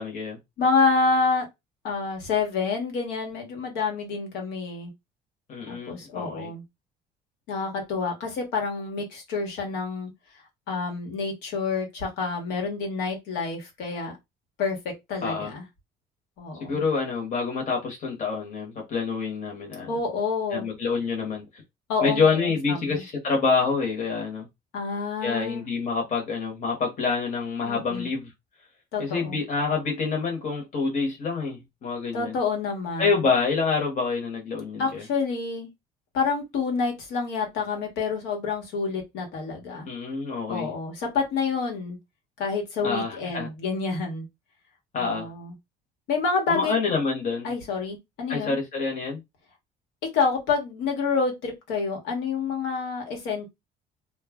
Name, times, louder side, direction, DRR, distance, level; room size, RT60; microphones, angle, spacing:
voice 1, 0.0-0.4 5.5-6.5 15.2-15.5 16.6-19.9 20.5-21.6 22.0-24.5 25.2-28.3 29.0-32.4 33.0-35.0 39.8-40.7 42.8-43.5 44.9-45.3 46.5-47.5 48.3-49.2, left 4 dB, 50° left, 1.1 m, -27 dB
voice 2, 0.6-1.5 1.8-4.9 5.7-6.6 7.5-10.1 10.7-14.1 14.6-15.6 16.4-16.8 19.9-20.7 21.9-23.0 24.7-25.6 27.6-28.1 28.9-29.4 32.1-33.3 34.8-35.7 36.1-39.9 40.5-42.0 42.4-44.3 45.0-45.5 46.1-46.7 47.4-48.6 50.0-53.5, left 4 dB, 85° left, 1.2 m, -28 dB
2.3 x 2.0 x 3.5 m
cardioid pair, 110°, 17 cm